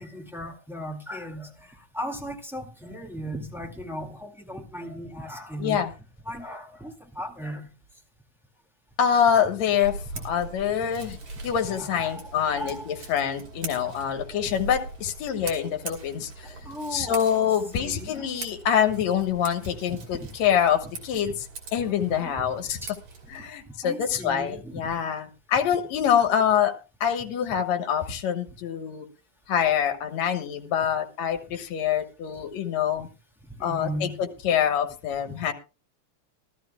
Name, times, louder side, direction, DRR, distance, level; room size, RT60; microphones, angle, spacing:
voice 1, 0.0-5.9 6.2-7.7 10.1-10.2 10.8-11.0 11.7-13.3 14.3-14.5 16.6-18.3 19.9-20.0 21.8-22.3 22.7-22.9 23.8-24.8 33.6-34.2, equal, ahead, 1.5 m, -37 dB
voice 2, 9.0-11.2 11.4-16.5 16.9-21.5 21.7-22.8 23.3-26.7 27.0-29.1 29.5-33.1 33.6-35.5, left 8 dB, 70° left, 2.5 m, -25 dB
Scissors, 9.8-23.5, right 3 dB, 75° right, 4.1 m, -42 dB
20.5 x 13.0 x 2.3 m
omnidirectional pair, 3.3 m